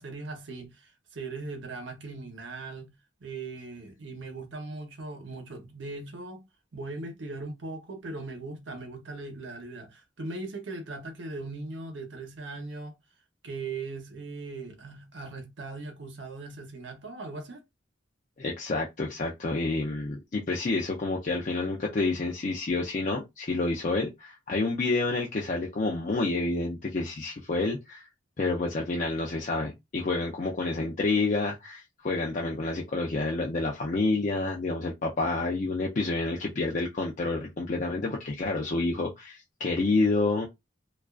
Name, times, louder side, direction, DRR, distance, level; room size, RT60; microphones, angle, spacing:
voice 1, 0.0-2.9 3.2-6.4 6.7-12.9 13.4-17.6, right 3 dB, 75° right, 0.8 m, -39 dB
voice 2, 18.4-28.1 28.4-40.5, left 3 dB, 40° left, 0.4 m, -29 dB
2.3 x 2.3 x 2.3 m
head